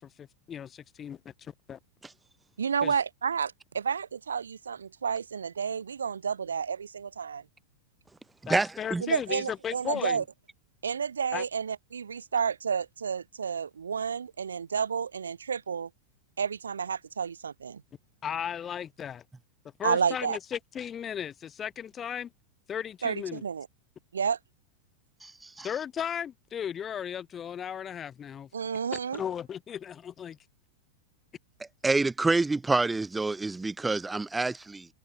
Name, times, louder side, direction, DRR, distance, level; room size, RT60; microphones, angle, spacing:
voice 1, 0.0-1.8 2.8-2.9 8.5-10.2 11.3-11.4 18.2-19.2 19.8-22.3 22.7-23.4 25.6-28.5 28.9-30.4, left 8 dB, 25° left, 1.2 m, -36 dB
voice 2, 2.6-7.4 9.0-10.2 10.8-15.9 16.4-17.8 19.8-20.4 23.0-23.7 24.1-24.4 28.5-29.2, right 6 dB, 70° right, 1.8 m, -30 dB
voice 3, 8.5-9.0 25.2-25.7 31.8-34.9, right 3 dB, 10° right, 1.0 m, -27 dB
figure-of-eight pair, 90°, 0 cm